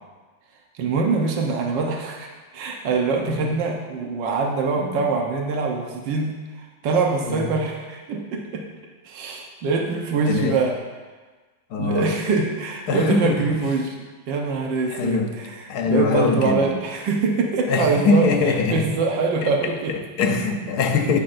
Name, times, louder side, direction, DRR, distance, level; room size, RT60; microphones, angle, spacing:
voice 1, 0.7-8.6 9.0-10.7 11.8-14.0 14.3-19.9, right 4 dB, 80° right, 0 dB, 1.6 m, -24 dB
voice 2, 3.2-3.6 4.8-5.0 7.2-7.4 10.3-10.6 11.7-12.1 12.9-13.4 14.9-15.3 15.7-16.7 17.7-18.8 19.4-21.2, left 4 dB, 65° left, 5 dB, 1.2 m, -22 dB
16.5 x 6.0 x 2.6 m, 1.3 s
omnidirectional pair, 1.9 m